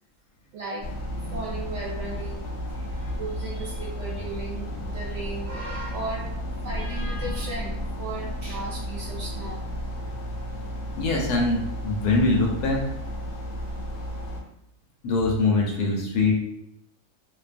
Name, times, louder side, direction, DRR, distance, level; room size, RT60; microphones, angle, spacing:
voice 1, 0.5-0.9 1.3-2.4 2.9-6.2 6.6-9.6, right 3 dB, 65° right, -4 dB, 0.7 m, -36 dB
sound 1, 0.8-14.4, equal, 75° left, 0.6 m, -33 dB
voice 2, 10.9-12.8 15.0-16.3, left 3 dB, 90° left, -1 dB, 1.2 m, -23 dB
2.6 x 2.3 x 2.4 m, 0.79 s
omnidirectional pair, 1.6 m